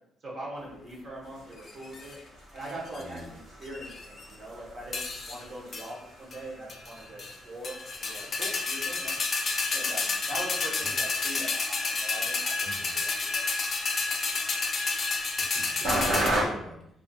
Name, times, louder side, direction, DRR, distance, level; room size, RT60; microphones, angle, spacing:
voice 1, 0.2-2.2 2.5-9.1 9.7-12.5 13.0-13.4, right 1 dB, 45° right, -4 dB, 0.8 m, -41 dB
sound 1, 1.2-16.4, right 1 dB, 90° right, 1.1 m, -38 dB
sound 2, 1.7-2.1 2.7-3.2 3.7-4.3 4.9-5.4 5.7-5.9 6.3-6.4 6.7-7.3 7.6-16.3, left 4 dB, 45° left, 0.4 m, -30 dB
voice 2, 3.0-3.3 10.8-11.0 12.6-12.9 15.4-16.8, right 1 dB, 20° right, -5 dB, 0.8 m, -44 dB
2.4 x 2.3 x 2.6 m, 0.75 s
cardioid pair, 90°, 0 cm